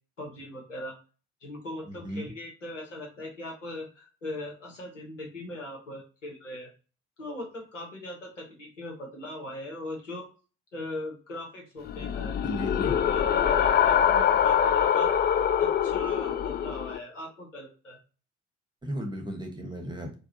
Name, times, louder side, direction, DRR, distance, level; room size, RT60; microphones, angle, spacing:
voice 1, 0.2-0.9 1.4-6.7 7.2-10.2 10.7-12.3 13.1-15.1 15.6-18.0, left 1 dB, 90° left, 0 dB, 1.0 m, -40 dB
voice 2, 1.9-2.3 12.4-12.9 18.8-20.2, right 1 dB, 10° right, 2 dB, 1.1 m, -35 dB
sound 1, 11.9-17.0, left 8 dB, 30° left, 0.3 m, -24 dB
4.6 x 2.3 x 2.7 m, 0.35 s
figure-of-eight pair, 45°, 36 cm